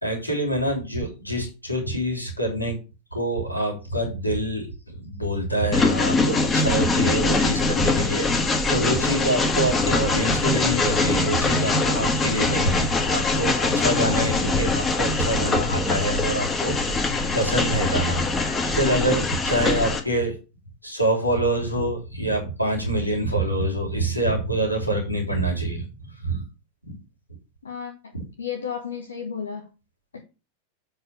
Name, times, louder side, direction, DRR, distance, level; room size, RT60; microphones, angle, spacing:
voice 1, 0.0-2.8 3.1-20.3 20.8-25.9 26.2-26.4 26.8-26.9 28.1-28.2, right 1 dB, 90° left, 3.2 m, -26 dB
Train, 5.7-20.0, left 3 dB, 20° left, 1.7 m, -23 dB
voice 2, 27.6-28.1 28.4-29.7 30.1-30.2, left 7 dB, 70° left, 1.3 m, -33 dB
7.7 x 4.5 x 6.6 m
figure-of-eight pair, 90°, 0 cm